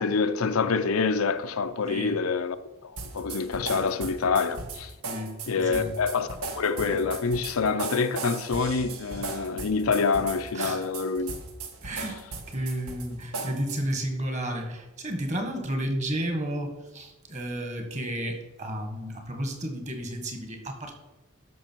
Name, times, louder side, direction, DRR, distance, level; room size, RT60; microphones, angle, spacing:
voice 1, 0.0-2.6 2.8-4.9 5.5-11.3, left 4 dB, 75° left, 0.6 m, -26 dB
voice 2, 1.8-2.2 5.0-5.9 10.5-10.8 11.8-12.2 12.5-20.9, right 1 dB, 30° right, 1.5 m, -32 dB
sound 1, 3.0-14.0, right 3 dB, 85° right, 1.4 m, -37 dB
12.5 x 6.0 x 4.5 m
head